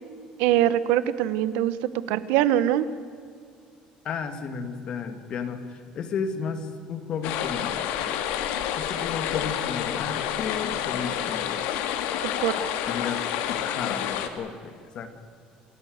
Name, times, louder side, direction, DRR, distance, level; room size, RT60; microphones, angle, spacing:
voice 1, 0.4-1.7 2.1-2.9 12.2-12.6, right 12 dB, 80° right, 15 dB, 1.1 m, -23 dB
voice 2, 4.0-7.9 8.8-11.6 12.6-13.2 13.5-15.1, left 6 dB, 35° left, 8 dB, 2.1 m, -33 dB
sound 1, 7.2-14.3, left 10 dB, 80° left, 2.1 m, -29 dB
27.5 x 16.5 x 8.0 m, 2.3 s
cardioid pair, 180°, 3 cm